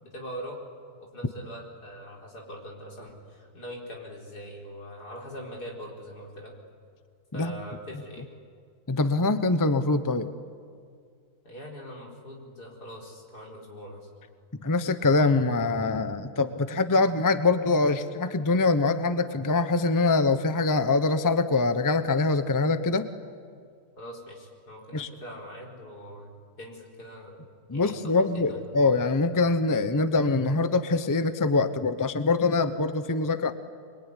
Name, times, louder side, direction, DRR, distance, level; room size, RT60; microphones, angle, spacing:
voice 1, 0.0-0.6 1.1-6.5 7.3-8.3 11.4-14.1 24.0-27.4 27.7-28.6, equal, 80° left, -1 dB, 5.1 m, -42 dB
voice 2, 8.9-10.3 14.6-23.1 24.9-25.1 27.7-33.5, left 3 dB, 15° left, 10 dB, 0.8 m, -24 dB
25.5 x 22.5 x 9.9 m, 2.2 s
omnidirectional pair, 1.7 m